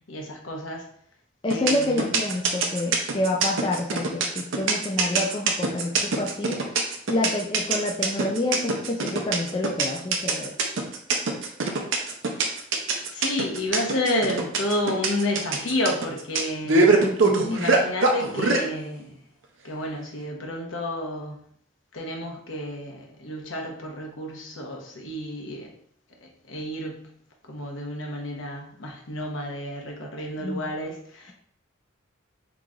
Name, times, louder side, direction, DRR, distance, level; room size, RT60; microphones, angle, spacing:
voice 1, 0.1-0.9 1.5-2.1 12.3-12.6 13.1-17.1 17.5-19.1 19.6-21.4 21.9-25.7 26.2-27.1 27.5-31.3, left 1 dB, 70° left, 0 dB, 0.9 m, -31 dB
voice 2, 1.4-6.6 7.1-10.5 17.0-17.7 30.4-30.6, left 1 dB, 25° left, -1 dB, 0.4 m, -28 dB
sound 1, 1.5-18.6, right 3 dB, 70° right, 0.6 m, -23 dB
3.7 x 3.0 x 3.7 m, 0.64 s
head